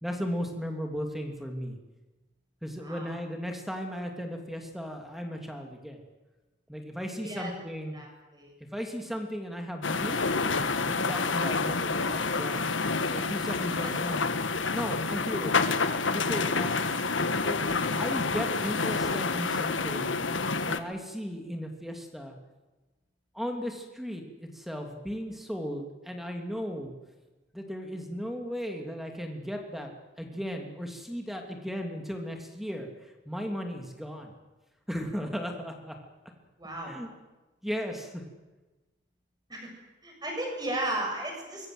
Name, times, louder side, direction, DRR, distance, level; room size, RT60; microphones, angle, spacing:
voice 1, 0.0-1.8 2.6-6.0 6.7-8.0 8.7-10.2 10.8-12.7 13.1-14.3 14.7-15.6 16.1-20.1 20.7-22.4 23.3-26.9 27.5-29.9 30.2-34.3 34.9-36.0 36.9-37.1 37.6-38.2, equal, ahead, 3 dB, 3.0 m, -36 dB
voice 2, 2.8-3.2 7.2-7.5 7.9-8.5 13.8-13.9 36.6-37.0 39.5-39.7 40.0-41.7, right 1 dB, 20° right, 1 dB, 7.3 m, -35 dB
sound 1, 9.8-20.8, left 4 dB, 80° left, 1.5 m, -28 dB
25.0 x 22.5 x 8.0 m, 1.1 s
head